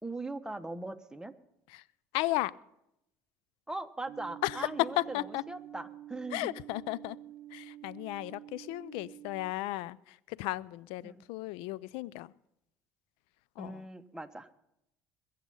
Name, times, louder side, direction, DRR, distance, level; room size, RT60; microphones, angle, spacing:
voice 1, 0.0-1.3 3.7-6.5 11.0-11.2 13.6-14.5, right 2 dB, 5° right, 8 dB, 1.2 m, -40 dB
voice 2, 2.1-2.5 4.4-4.7 5.0-5.4 6.3-7.2 7.5-12.3 13.6-13.9, left 17 dB, 75° left, 21 dB, 0.5 m, -35 dB
sound 1, 4.1-9.5, right 13 dB, 70° right, 0.9 m, -48 dB
22.0 x 7.6 x 5.5 m, 0.81 s
hypercardioid pair, 70°, 9 cm